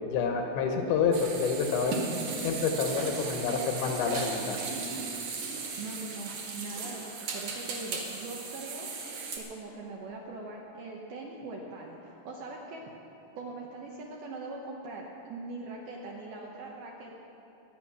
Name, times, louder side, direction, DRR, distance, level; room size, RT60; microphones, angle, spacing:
voice 1, 0.0-2.0 2.4-4.7, left 5 dB, 75° left, 4 dB, 2.9 m, -28 dB
sound 1, 1.1-9.4, right 4 dB, 60° right, 2.5 m, -37 dB
voice 2, 5.8-8.9 9.3-12.8 13.4-17.2, right 3 dB, 75° right, -1 dB, 2.4 m, -41 dB
23.0 x 9.1 x 6.0 m, 3.0 s
omnidirectional pair, 5.7 m